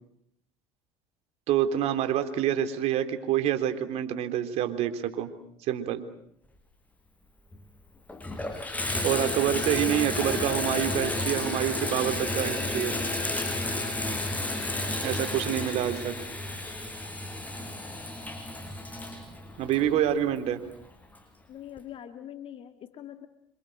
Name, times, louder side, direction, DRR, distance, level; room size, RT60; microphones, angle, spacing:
voice 1, 1.5-5.3 5.7-6.0 9.0-13.0 15.0-16.1 19.6-20.6, right 11 dB, 60° right, 8 dB, 3.7 m, -27 dB
Water tap faucet / Bathtub (filling or washing), 7.5-7.6 8.1-20.5 21.2-21.3 21.8-21.9, left 2 dB, 15° left, 5.6 m, -32 dB
voice 2, 21.5-23.3, left 10 dB, 50° left, 7 dB, 2.1 m, -43 dB
28.0 x 26.5 x 6.4 m, 0.73 s
supercardioid pair, 85°, 12 cm